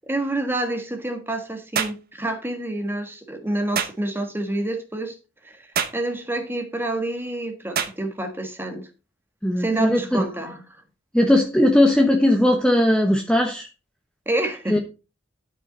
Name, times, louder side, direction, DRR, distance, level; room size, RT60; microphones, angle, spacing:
voice 1, 0.1-5.1 5.4-5.7 5.9-8.9 9.6-10.6 14.2-14.8, right 2 dB, 10° right, 1.5 m, -28 dB
sound 1, 1.7-2.0 3.7-4.0 5.7-6.0 7.7-8.0, right 7 dB, 50° right, 1.0 m, -25 dB
voice 2, 9.4-10.2 11.1-13.7 14.7-14.8, left 1 dB, 5° left, 1.0 m, -18 dB
12.0 x 5.3 x 3.9 m
head